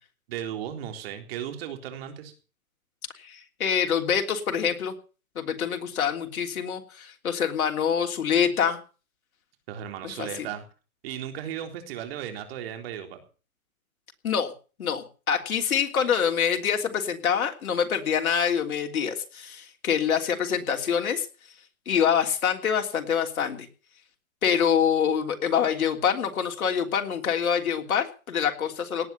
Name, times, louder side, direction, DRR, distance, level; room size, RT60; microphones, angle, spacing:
voice 1, 0.3-2.3 9.7-10.6 11.0-13.2, right 10 dB, 45° right, 6 dB, 3.9 m, -35 dB
voice 2, 3.2-4.9 5.3-8.8 10.0-10.5 14.2-14.5 14.8-21.3 21.8-23.7 24.4-29.1, left 7 dB, 80° left, 4 dB, 3.4 m, -25 dB
18.0 x 9.3 x 6.9 m, 0.38 s
hypercardioid pair, 160°, 42 cm